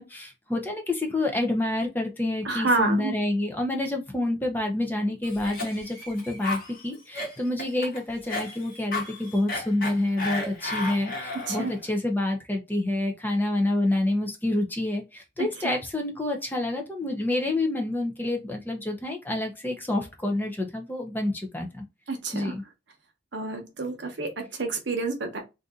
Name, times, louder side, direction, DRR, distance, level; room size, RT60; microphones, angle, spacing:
voice 1, 0.0-21.8 22.3-22.6, left 1 dB, 10° left, 0.6 m, -28 dB
voice 2, 2.4-3.1 11.5-11.7 15.6-15.7 22.1-22.5 23.3-25.4, right 3 dB, 65° right, 0.9 m, -28 dB
Cough, 5.2-11.8, left 2 dB, 50° left, 1.2 m, -34 dB
2.6 x 2.6 x 3.6 m
head